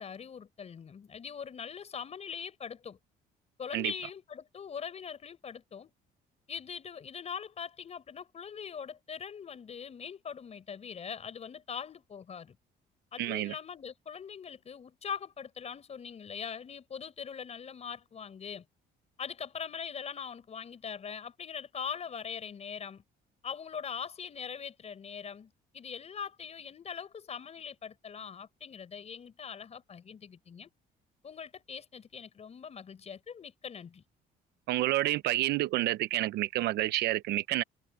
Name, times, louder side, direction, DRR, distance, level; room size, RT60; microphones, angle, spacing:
voice 1, 0.0-3.0 3.6-5.9 6.5-12.6 13.1-18.6 19.2-23.0 23.4-30.7 31.2-34.0, left 7 dB, 40° left, 5.9 m, -42 dB
voice 2, 13.2-13.5 34.7-37.6, right 16 dB, 80° right, 0.9 m, -29 dB
cardioid pair, 110°, 17 cm